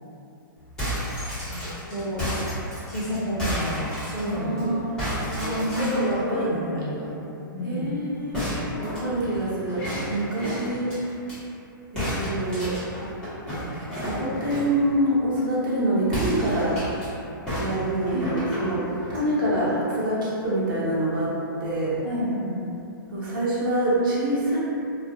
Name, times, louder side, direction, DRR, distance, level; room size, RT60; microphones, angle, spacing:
sound 1, 0.6-4.6 5.0-6.1 8.3-11.4 12.0-14.8 16.0-17.1 17.5-19.3, equal, 5° left, 1.1 m, -31 dB
voice 1, 1.9-2.2 2.9-4.7 5.4-7.2 7.5-7.9 18.1-18.3 22.0-22.6, equal, 50° left, -9 dB, 0.8 m, -29 dB
voice 2, 4.2-4.9 5.3-6.5 7.0-7.1 7.6-8.4 8.8-11.0 11.9-12.8 13.9-16.8 17.6-21.3 21.6-22.0 23.1-24.6, right 1 dB, 70° right, -8 dB, 0.9 m, -26 dB
2.4 x 2.4 x 2.6 m, 2.7 s
hypercardioid pair, 145°, 12 cm